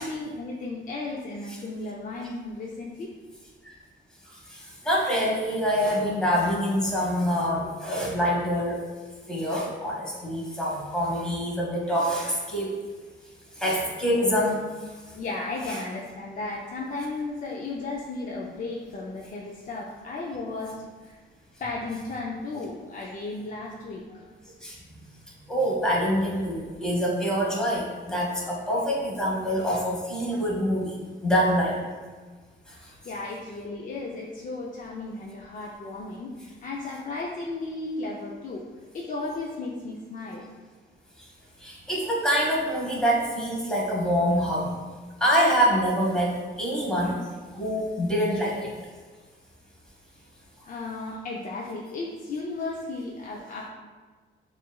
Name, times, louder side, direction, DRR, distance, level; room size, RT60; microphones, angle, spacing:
voice 1, 0.0-3.1 15.1-21.2 21.6-24.3 33.0-38.7 38.9-40.5 50.6-53.7, left 3 dB, 40° left, -3 dB, 0.5 m, -35 dB
voice 2, 4.5-8.8 9.3-12.7 13.6-14.6 15.7-15.8 24.6-24.7 25.5-30.9 31.2-31.7 41.6-44.7 45.2-47.2 47.5-48.7, equal, 5° left, -5 dB, 1.3 m, -25 dB
7.0 x 2.5 x 2.3 m, 1.4 s
cardioid pair, 90°, 20 cm